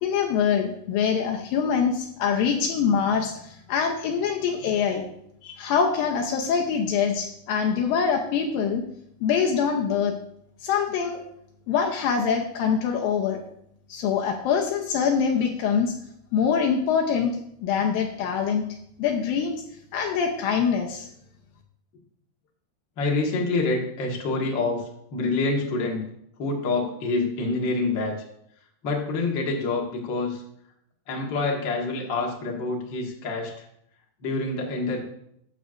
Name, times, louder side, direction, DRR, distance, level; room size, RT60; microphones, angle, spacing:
voice 1, 0.0-5.0 5.4-8.9 9.2-10.2 10.6-11.2 11.7-13.4 13.9-15.9 16.3-17.4 17.6-18.6 19.0-19.6 19.9-21.1, left 6 dB, 75° left, 2 dB, 2.2 m, -24 dB
voice 2, 23.0-26.0 26.4-28.1 28.8-30.4 31.1-33.6 34.2-35.0, left 3 dB, 60° left, -1 dB, 1.2 m, -27 dB
13.0 x 7.7 x 2.5 m, 0.72 s
omnidirectional pair, 4.7 m